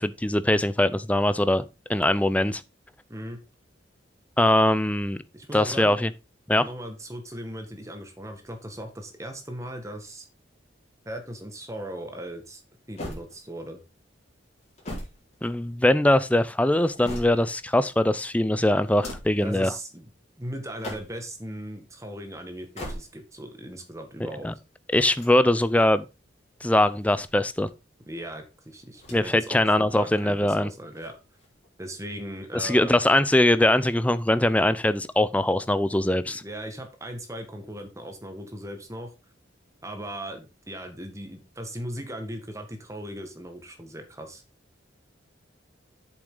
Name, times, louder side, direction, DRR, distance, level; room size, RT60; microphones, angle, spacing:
voice 1, 0.0-1.6 1.9-2.6 4.4-5.2 5.5-6.1 6.5-6.6 15.4-19.7 24.4-24.5 24.9-26.1 26.6-27.7 29.1-30.7 32.5-36.4, left 1 dB, 5° left, 0.5 m, -22 dB
voice 2, 5.3-6.0 6.6-10.3 11.1-12.6 12.9-13.8 19.4-20.1 20.4-24.5 28.1-31.2 31.8-33.0 36.2-39.1 39.8-44.4, right 1 dB, 15° right, 1.7 m, -38 dB
sound 1, 13.0-13.8 14.6-16.0 16.6-17.7 18.8-19.5 20.6-21.4 22.5-23.4 24.9-25.9 26.8-27.7 28.9-29.5 29.8-29.9 30.9-31.7, left 1 dB, 35° left, 4.5 m, -41 dB
8.1 x 7.2 x 3.9 m
head